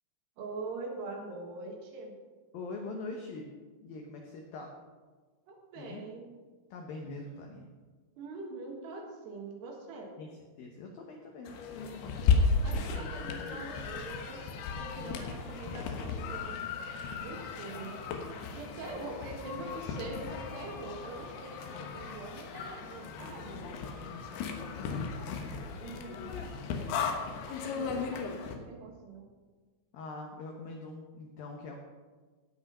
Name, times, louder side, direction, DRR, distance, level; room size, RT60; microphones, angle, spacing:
voice 1, 0.4-2.2 5.5-6.3 8.2-10.1 12.6-16.6 17.1-18.0 18.5-23.7 25.8-26.6 27.4-29.3, right 3 dB, 65° right, 1 dB, 3.2 m, -43 dB
voice 2, 2.5-3.5 3.8-4.7 5.8-6.1 6.7-7.7 10.2-10.3 10.6-12.2 12.9-13.6 15.0-15.2 18.9-19.0 23.0-23.4 24.6-25.6 26.1-26.5 29.9-31.8, left 3 dB, 90° left, 2 dB, 2.0 m, -44 dB
sound 1, 11.5-28.6, left 5 dB, 70° left, 3.2 m, -35 dB
17.5 x 6.0 x 5.4 m, 1.4 s
omnidirectional pair, 5.8 m